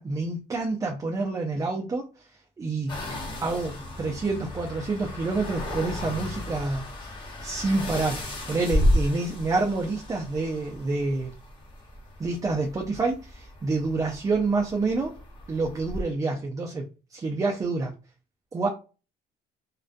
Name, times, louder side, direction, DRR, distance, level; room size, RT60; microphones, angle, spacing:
voice 1, 0.0-2.3 2.6-2.9 3.4-6.9 7.1-11.3 12.2-15.2 15.5-16.8 17.1-17.9 18.5-18.7, right 3 dB, 20° right, 0 dB, 0.4 m, -28 dB
sound 1, 2.9-16.0, left 1 dB, 30° left, 0.9 m, -33 dB
2.3 x 2.2 x 2.5 m, 0.32 s
cardioid pair, 110°, 17 cm